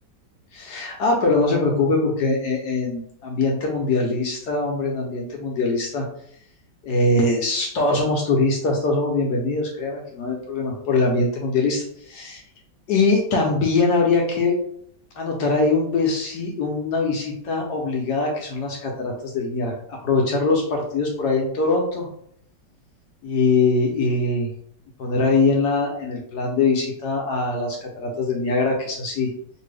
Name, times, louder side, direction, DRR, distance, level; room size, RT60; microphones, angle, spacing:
voice 1, 0.5-6.0 6.8-12.4 12.9-14.6 15.2-22.1 23.2-24.5 25.0-29.3, left 3 dB, 70° left, 0 dB, 1.1 m, -22 dB
2.9 x 2.6 x 3.2 m, 0.66 s
omnidirectional pair, 1.9 m